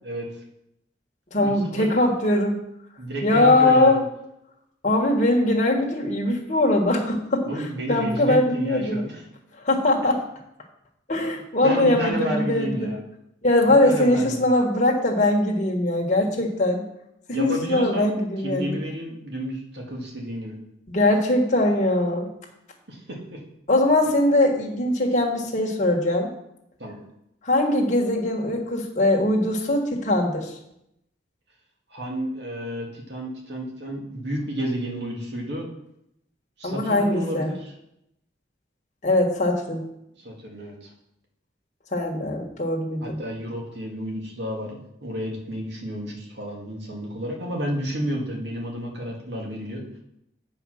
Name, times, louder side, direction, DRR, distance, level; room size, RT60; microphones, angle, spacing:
voice 1, 1.3-2.6 3.2-4.0 4.8-9.0 9.6-10.2 11.1-12.9 13.4-16.9 17.3-18.8 20.9-22.3 23.7-26.3 27.4-30.5 36.6-37.5 39.0-39.8 41.9-43.2, left 1 dB, 40° left, 0 dB, 1.4 m, -21 dB
voice 2, 3.0-4.0 7.5-9.2 11.6-13.0 13.8-14.4 17.3-18.1 18.4-20.6 22.9-23.4 26.8-27.0 31.9-35.7 36.6-37.7 40.2-40.9 43.0-49.8, equal, 70° right, -1 dB, 2.1 m, -31 dB
8.5 x 4.9 x 6.3 m, 0.80 s
head